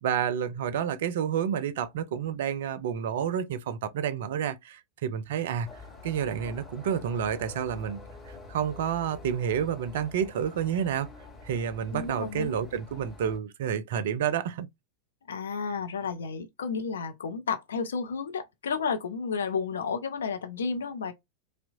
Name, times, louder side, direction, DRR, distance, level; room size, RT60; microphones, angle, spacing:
voice 1, 0.0-5.7 6.0-8.0 8.5-11.1 11.4-14.7, right 8 dB, 55° right, 0.4 m, -29 dB
sound 1, 5.6-13.4, left 3 dB, 20° left, 1.4 m, -47 dB
voice 2, 11.9-12.6 15.3-21.1, left 5 dB, 65° left, 0.6 m, -32 dB
2.7 x 2.1 x 2.6 m
figure-of-eight pair, 90°, 0 cm